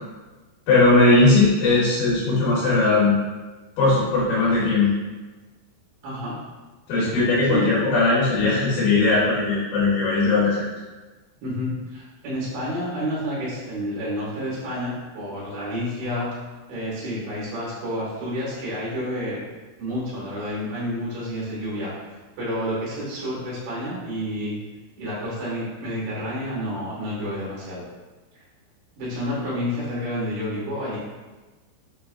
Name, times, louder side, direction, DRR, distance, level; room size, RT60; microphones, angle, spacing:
voice 1, 0.7-3.2 3.8-4.9 6.9-10.6, left 3 dB, 85° left, -9 dB, 3.7 m, -19 dB
voice 2, 6.0-6.4 6.9-7.7 11.4-16.3 16.7-19.4 19.8-21.9 22.4-24.5 25.0-27.9 28.3-28.4 29.0-31.0, equal, 70° right, -7 dB, 3.4 m, -29 dB
7.8 x 2.8 x 2.3 m, 1.2 s
omnidirectional pair, 5.3 m